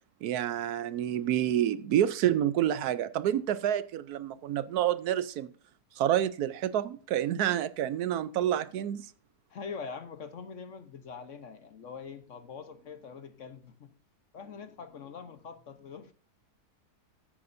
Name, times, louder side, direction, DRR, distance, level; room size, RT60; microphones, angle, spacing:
voice 1, 0.2-5.5 6.0-9.1, right 11 dB, 75° right, 1.1 m, -28 dB
voice 2, 9.5-13.9 14.3-16.1, left 5 dB, 55° left, 1.1 m, -43 dB
15.0 x 8.6 x 2.6 m
omnidirectional pair, 1.7 m